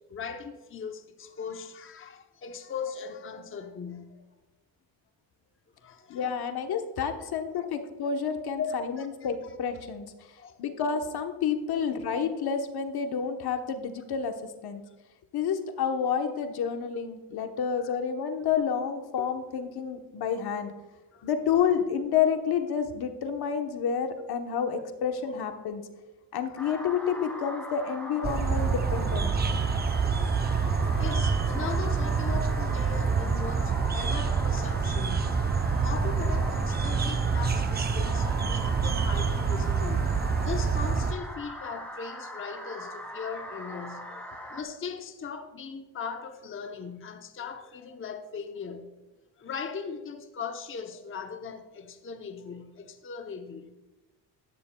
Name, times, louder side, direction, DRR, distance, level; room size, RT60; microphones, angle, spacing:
voice 1, 0.0-4.2 5.8-6.3 6.7-6.8 7.2-7.3 8.6-9.1 10.4-10.7 11.7-11.8 17.8-17.9 21.1-21.3 26.5-26.6 30.2-44.2 44.5-48.9 49.4-53.7, left 6 dB, 30° left, 0.8 m, -39 dB
voice 2, 6.1-10.0 10.6-14.4 14.6-14.8 15.3-20.7 21.2-25.8 26.3-29.3, left 7 dB, 60° left, 1.1 m, -29 dB
sound 1, 26.6-44.6, equal, 5° left, 2.3 m, -41 dB
sound 2, 28.2-41.1, right 5 dB, 25° right, 0.6 m, -27 dB
12.5 x 10.5 x 2.3 m
cardioid pair, 85°, 42 cm